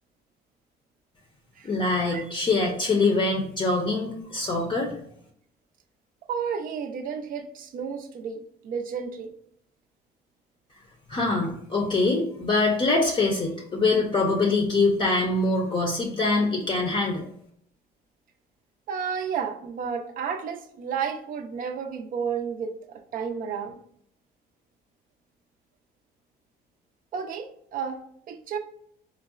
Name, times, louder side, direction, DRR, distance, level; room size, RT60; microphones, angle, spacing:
voice 1, 1.6-5.0 11.1-17.3, left 3 dB, 30° left, 0 dB, 0.5 m, -24 dB
voice 2, 6.3-9.3 18.9-23.8 27.1-28.6, right 6 dB, 55° right, 5 dB, 0.5 m, -32 dB
4.4 x 2.0 x 2.4 m, 0.68 s
cardioid pair, 110°, 17 cm